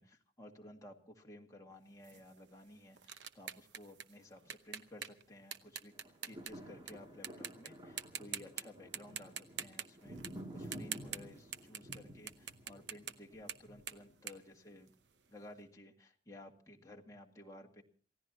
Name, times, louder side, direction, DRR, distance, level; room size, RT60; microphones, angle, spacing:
voice 1, 0.0-5.9 6.2-10.2 10.5-14.9 15.3-17.8, left 1 dB, 20° left, 0 dB, 2.0 m, -55 dB
sound 1, 2.0-6.9 7.2-7.7 8.0-8.6 8.9-15.3, right 8 dB, 80° right, 0.9 m, -45 dB
sound 2, 5.9-14.2 14.7-14.8, right 1 dB, 25° right, 2.5 m, -51 dB
28.0 x 16.0 x 2.9 m, 0.42 s
head